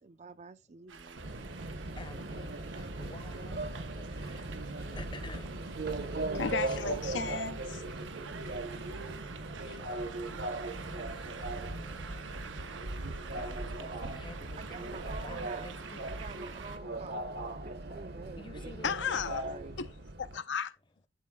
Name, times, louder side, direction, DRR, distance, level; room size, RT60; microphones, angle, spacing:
voice 1, 0.0-1.3 13.8-14.2 14.6-15.7 16.1-17.2 17.6-18.7 19.1-19.2 19.4-19.8, right 4 dB, 35° right, 0.5 m, -48 dB
sound 1, 0.9-16.8, right 3 dB, 85° right, 0.8 m, -45 dB
Subway metro underground, 1.2-20.4, right 2 dB, 60° right, 1.0 m, -39 dB
voice 2, 2.0-5.5 6.5-6.9 9.4-12.6 13.0-16.3 17.0-17.2 18.4-19.0, left 2 dB, 25° left, 0.7 m, -51 dB
voice 3, 6.3-7.8 18.8-19.5 19.8-19.9 20.2-20.7, left 6 dB, 70° left, 0.6 m, -34 dB
12.0 x 4.0 x 2.3 m
head